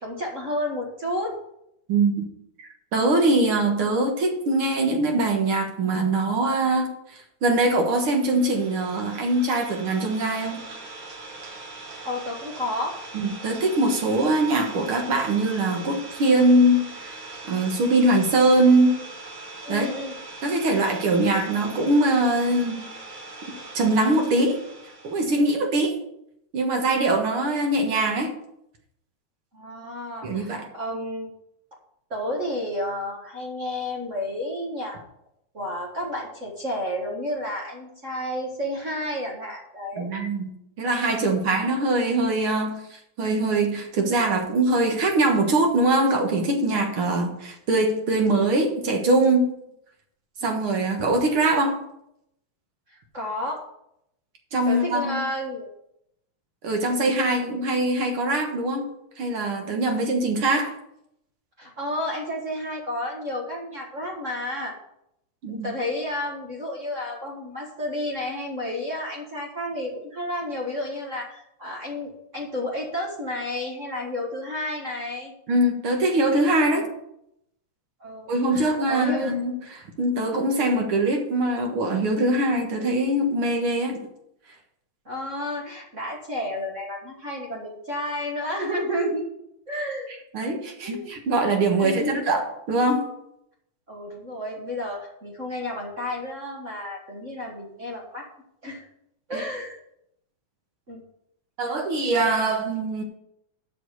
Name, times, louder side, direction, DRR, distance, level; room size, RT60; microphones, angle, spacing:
voice 1, 0.0-1.3 12.0-13.0 19.6-20.1 29.5-31.3 32.1-35.0 35.5-40.1 41.1-41.4 47.1-47.2 50.4-50.5 52.9-53.6 54.6-55.7 61.6-64.7 65.5-75.3 76.7-76.9 78.0-79.3 85.0-89.3 89.7-90.1 90.8-91.2 91.7-92.2 93.9-98.3 98.6-98.9 99.3-99.8 100.9-101.0, left 1 dB, 35° right, -2 dB, 1.3 m, -31 dB
voice 2, 1.9-2.3 2.6-10.6 13.1-17.2 17.5-19.0 19.7-19.9 20.4-22.8 23.7-24.6 25.0-26.0 26.5-28.3 30.2-30.7 40.0-40.5 40.8-49.5 50.4-51.8 54.5-55.2 56.6-58.9 59.2-60.7 65.4-65.7 75.5-76.9 78.3-84.0 90.3-93.1 99.3-99.4 101.6-103.0, right 2 dB, 50° right, 3 dB, 2.0 m, -22 dB
Idling, 7.8-25.5, right 2 dB, 80° right, 4.1 m, -41 dB
7.8 x 6.2 x 8.1 m, 0.78 s
omnidirectional pair, 3.4 m